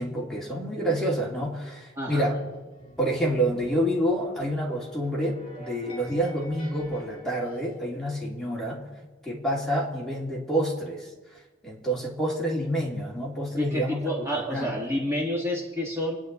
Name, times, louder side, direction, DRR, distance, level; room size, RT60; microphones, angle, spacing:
voice 1, 0.0-2.3 3.0-8.9 9.2-11.1 11.6-14.8, right 1 dB, ahead, -5 dB, 2.9 m, -28 dB
voice 2, 2.0-2.3 13.6-16.2, equal, 15° right, -3 dB, 2.1 m, -29 dB
sound 1, 2.3-7.8, right 2 dB, 30° left, 4.8 m, -48 dB
28.0 x 9.5 x 4.1 m, 1.3 s
head